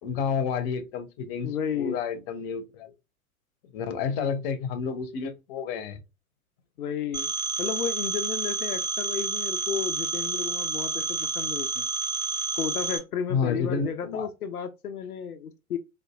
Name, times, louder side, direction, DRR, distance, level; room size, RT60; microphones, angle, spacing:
voice 1, 0.0-1.5 1.8-2.9 3.7-6.0 13.3-14.3, left 6 dB, 40° left, 0.8 m, -30 dB
voice 2, 1.4-2.0 4.1-4.4 6.8-7.3 7.6-11.9 12.6-15.8, left 7 dB, 80° left, 0.6 m, -33 dB
Telephone, 7.1-13.0, right 4 dB, 80° right, 1.5 m, -29 dB
4.0 x 2.6 x 2.3 m
figure-of-eight pair, 105°, 44 cm